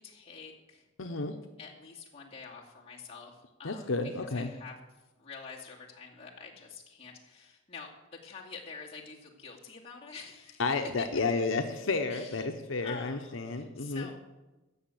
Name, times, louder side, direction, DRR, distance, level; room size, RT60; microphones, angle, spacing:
voice 1, 0.0-0.9 1.6-4.7 5.2-10.7 11.0-11.1 12.1-12.5 12.8-14.2, left 5 dB, 30° left, -3 dB, 2.4 m, -47 dB
voice 2, 1.0-1.3 3.6-4.5 10.6-14.1, left 3 dB, 75° left, 5 dB, 0.9 m, -31 dB
14.0 x 6.3 x 8.4 m, 1.1 s
head